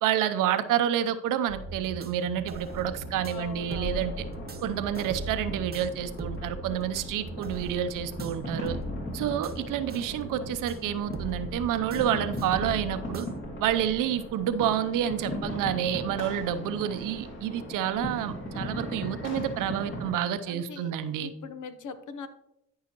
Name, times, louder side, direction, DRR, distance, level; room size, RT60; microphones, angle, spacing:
voice 1, 0.0-4.2 4.6-8.8 9.1-13.3 13.6-21.3, right 10 dB, 85° right, 11 dB, 0.7 m, -29 dB
sound 1, 1.5-13.4, right 2 dB, 30° right, 1.0 m, -40 dB
sound 2, 2.5-20.1, left 1 dB, 40° left, 2.7 m, -38 dB
voice 2, 3.3-4.1 20.4-22.3, left 5 dB, 70° left, 10 dB, 1.0 m, -42 dB
13.5 x 5.6 x 3.0 m, 0.80 s
supercardioid pair, 65°, 31 cm